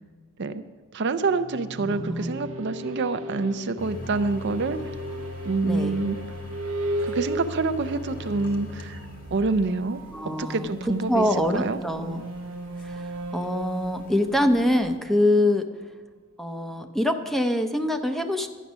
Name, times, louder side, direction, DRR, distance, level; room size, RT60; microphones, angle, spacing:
voice 1, 0.9-4.8 5.4-6.2 7.0-9.0 9.3-11.3 11.5-11.8, right 3 dB, 55° right, 10 dB, 0.5 m, -27 dB
sound 1, 1.2-15.8, right 1 dB, 85° right, 0.9 m, -36 dB
voice 2, 1.8-2.4 5.6-6.0 10.1-12.2 12.8-15.7 16.4-18.5, left 1 dB, ahead, 6 dB, 0.6 m, -25 dB
sound 2, 3.8-15.0, left 4 dB, 45° left, 1.4 m, -42 dB
12.0 x 9.1 x 6.1 m, 1.4 s
head